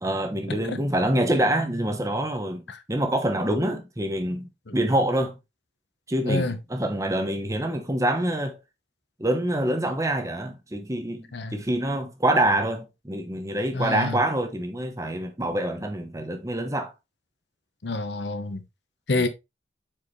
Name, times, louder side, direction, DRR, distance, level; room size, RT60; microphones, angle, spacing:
voice 1, 0.0-5.4 6.1-8.6 9.2-16.9 19.2-19.3, right 1 dB, 15° right, 0.9 m, -26 dB
voice 2, 6.2-6.6 11.3-11.6 13.7-14.2 17.8-18.6 19.1-19.3, left 2 dB, 70° left, 1.0 m, -28 dB
7.6 x 4.7 x 3.1 m
head